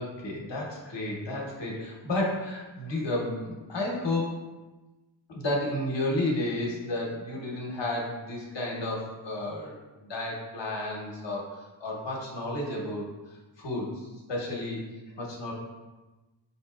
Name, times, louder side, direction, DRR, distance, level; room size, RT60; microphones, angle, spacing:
voice 1, 0.0-4.4 5.3-13.1 13.6-14.9 15.2-15.5, left 1 dB, 65° left, -2 dB, 0.9 m, -32 dB
5.1 x 2.7 x 2.3 m, 1.1 s
wide cardioid pair, 140°, 46 cm